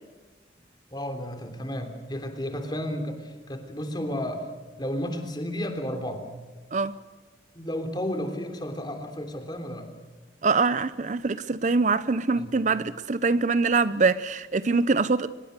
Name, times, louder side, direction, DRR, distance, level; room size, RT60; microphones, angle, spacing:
voice 1, 0.9-4.5 4.8-6.3 7.5-9.9 12.4-12.5, equal, 25° left, 3.2 m, -32 dB
voice 2, 10.4-15.3, right 4 dB, 40° right, 0.6 m, -24 dB
24.5 x 20.5 x 6.7 m
head